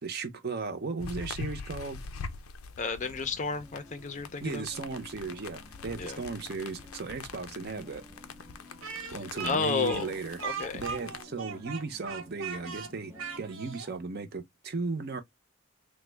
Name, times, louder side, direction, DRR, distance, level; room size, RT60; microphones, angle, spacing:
voice 1, 0.0-2.0 4.4-8.0 9.1-10.4 10.7-15.2, right 4 dB, 50° right, 0.6 m, -36 dB
sound 1, 1.0-11.2, left 5 dB, 90° left, 0.5 m, -44 dB
voice 2, 2.8-4.7 6.0-6.2 9.1-9.2 9.4-10.1 10.4-10.8, left 4 dB, 35° left, 0.4 m, -31 dB
sound 2, 3.0-13.5, left 1 dB, 10° right, 0.7 m, -53 dB
Speech, 8.8-13.9, right 6 dB, 75° right, 0.9 m, -39 dB
3.4 x 2.1 x 3.2 m
head